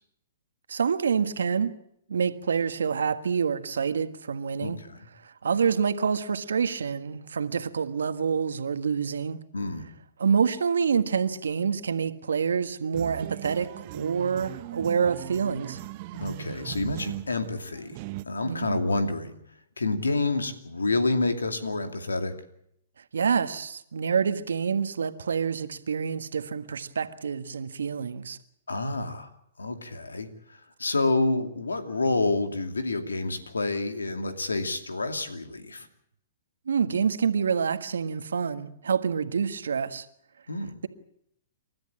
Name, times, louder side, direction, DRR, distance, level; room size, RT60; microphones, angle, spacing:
voice 1, 0.7-1.7 2.1-4.8 5.2-9.4 10.2-15.8 18.4-18.8 23.1-28.4 36.7-40.0, right 6 dB, 80° right, 1.6 m, -27 dB
voice 2, 4.6-5.0 9.5-9.9 16.1-18.0 18.3-19.4 19.8-22.3 28.7-29.3 29.6-30.3 30.8-35.9 40.5-40.7, left 2 dB, 90° left, 2.5 m, -28 dB
sound 1, 12.9-18.2, right 16 dB, 45° right, 1.0 m, -39 dB
29.5 x 13.0 x 8.7 m
hypercardioid pair, 120°, 0 cm